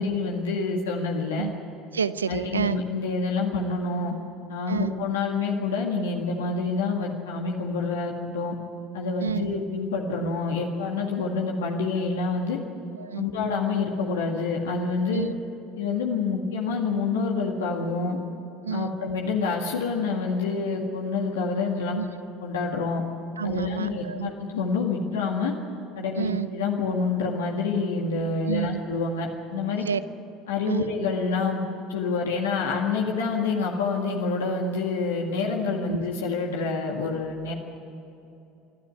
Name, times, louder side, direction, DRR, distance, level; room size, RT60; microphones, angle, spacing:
voice 1, 0.0-1.5 2.3-4.1 4.5-8.5 8.9-12.6 13.1-15.3 15.8-18.2 18.7-22.0 22.4-23.0 23.4-25.5 26.0-29.8 30.5-31.6 31.9-37.5, left 4 dB, 80° left, 0 dB, 2.0 m, -27 dB
voice 2, 1.9-2.8 4.7-4.9 9.2-9.5 12.9-13.2 15.1-15.3 18.6-18.9 21.9-22.1 23.4-24.3 26.2-26.5 28.4-28.8 29.9-30.0 30.7-30.9 35.9-36.0, right 7 dB, 90° right, 15 dB, 0.6 m, -29 dB
23.5 x 12.5 x 9.8 m, 2.9 s
hypercardioid pair, 70°, 0 cm